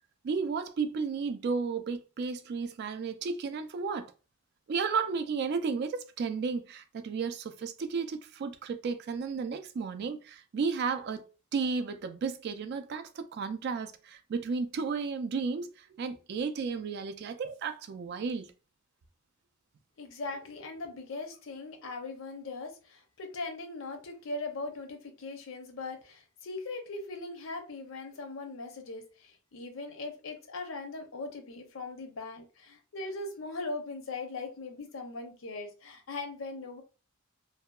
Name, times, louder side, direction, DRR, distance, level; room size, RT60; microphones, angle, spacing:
voice 1, 0.2-4.1 4.7-11.3 11.5-18.5, right 5 dB, 55° right, 0.3 m, -33 dB
voice 2, 20.0-36.8, left 3 dB, 70° left, 0.6 m, -40 dB
2.7 x 2.2 x 2.2 m
head